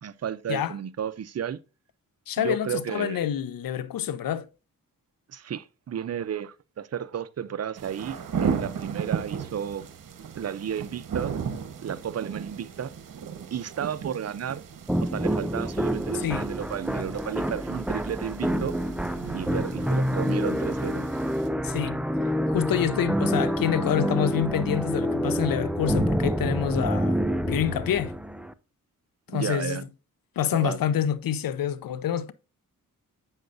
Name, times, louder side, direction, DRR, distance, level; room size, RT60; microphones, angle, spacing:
voice 1, 0.0-1.6 2.4-3.2 5.3-9.8 10.3-11.3 11.8-12.9 13.5-14.6 15.0-18.7 19.3-21.1 29.3-29.8 30.4-30.8, right 9 dB, 45° right, 0.6 m, -33 dB
voice 2, 2.3-4.5 16.1-16.5 21.6-22.0 22.5-27.2 27.5-28.1 29.3-29.8 30.4-32.3, left 9 dB, 75° left, 0.7 m, -27 dB
sound 1, 7.8-21.5, right 7 dB, 65° right, 1.2 m, -36 dB
sound 2, 14.9-28.5, equal, 5° right, 0.4 m, -27 dB
7.9 x 6.4 x 2.6 m
cardioid pair, 60°, 35 cm